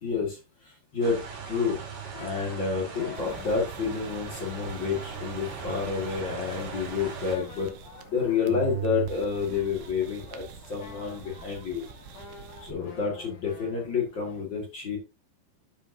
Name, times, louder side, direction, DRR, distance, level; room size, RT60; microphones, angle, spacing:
voice 1, 0.0-1.2 1.4-1.8 2.2-7.7 8.1-11.8 12.6-15.0, left 5 dB, 75° left, -1 dB, 1.0 m, -29 dB
sound 1, 1.0-7.4, right 5 dB, 60° right, 4.3 m, -40 dB
sound 2, 2.1-14.4, left 4 dB, 55° left, 2.6 m, -48 dB
sound 3, 3.2-8.2 8.5-12.7, right 9 dB, 80° right, 2.8 m, -41 dB
12.5 x 5.2 x 2.7 m, 0.26 s
omnidirectional pair, 5.6 m